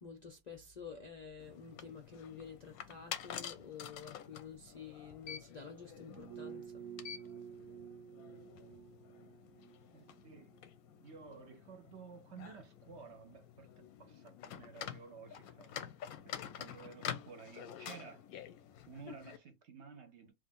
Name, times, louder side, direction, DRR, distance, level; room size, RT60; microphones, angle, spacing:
voice 1, 0.0-6.8, left 6 dB, 65° left, 0.4 m, -50 dB
sound 1, 1.4-19.4, left 9 dB, 90° left, 1.1 m, -49 dB
sound 2, 6.0-11.2 11.5-11.6, right 9 dB, 85° right, 1.1 m, -51 dB
voice 2, 9.9-10.6 11.0-15.8 16.2-18.2 18.9-20.3, right 5 dB, 60° right, 0.9 m, -53 dB
3.2 x 2.5 x 3.6 m
omnidirectional pair, 1.5 m